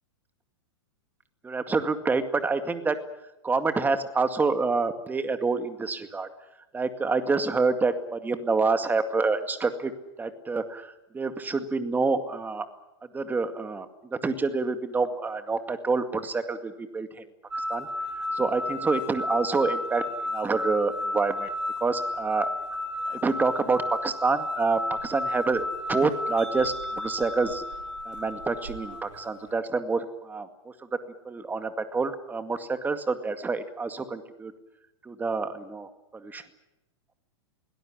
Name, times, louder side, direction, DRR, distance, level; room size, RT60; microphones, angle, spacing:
voice 1, 1.4-3.0 3.4-6.3 6.7-9.9 10.2-12.7 13.1-17.3 17.5-17.9 18.2-20.0 20.3-21.5 21.8-22.5 23.1-27.6 28.1-30.7 31.3-34.5 35.0-36.4, right 4 dB, 10° right, 9 dB, 2.1 m, -27 dB
sound 1, 17.5-29.5, left 1 dB, 90° right, 4.5 m, -33 dB
22.5 x 17.5 x 10.0 m, 0.94 s
hypercardioid pair, 120°, 15 cm